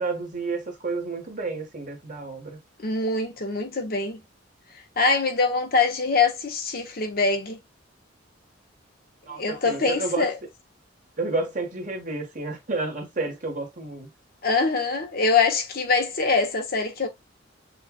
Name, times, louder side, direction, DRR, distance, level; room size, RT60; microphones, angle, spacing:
voice 1, 0.0-2.6 9.3-10.3 11.2-14.1, right 3 dB, 40° right, 1.4 m, -30 dB
voice 2, 2.8-4.2 5.0-7.6 9.3-10.4 14.4-17.1, left 4 dB, 50° left, 0.8 m, -24 dB
6.6 x 2.4 x 2.3 m
head